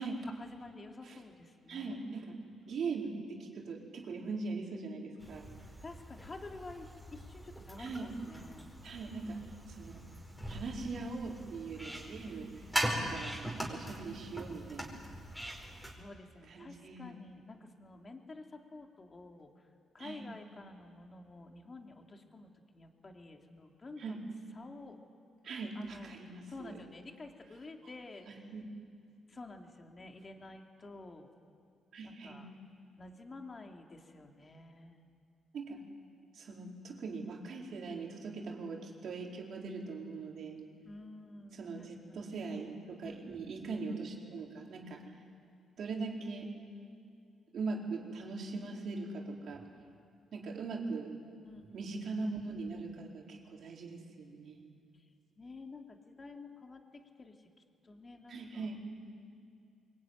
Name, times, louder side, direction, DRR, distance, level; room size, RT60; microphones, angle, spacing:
voice 1, 0.2-2.0 5.8-8.7 16.0-19.7 19.9-24.2 24.6-25.0 25.7-26.1 26.5-28.4 29.3-31.3 32.0-32.5 33.0-35.0 40.8-42.3 43.0-43.7 51.4-51.9 55.4-57.5 57.8-58.7, left 3 dB, 30° left, 3 dB, 2.9 m, -50 dB
voice 2, 1.7-2.4 2.7-5.5 7.8-8.1 8.8-9.4 9.7-10.1 10.5-15.0 16.5-17.2 20.0-20.3 24.0-24.2 25.4-26.8 28.3-28.6 31.9-32.4 35.5-35.8 36.3-40.6 41.5-45.0 45.8-46.5 47.5-49.6 50.3-51.1 51.7-54.6 58.3-58.8, right 4 dB, 60° right, -1 dB, 4.7 m, -41 dB
sound 1, 5.2-15.9, equal, ahead, 5.2 m, -41 dB
24.0 x 22.5 x 9.8 m, 2.4 s
cardioid pair, 90°, 0 cm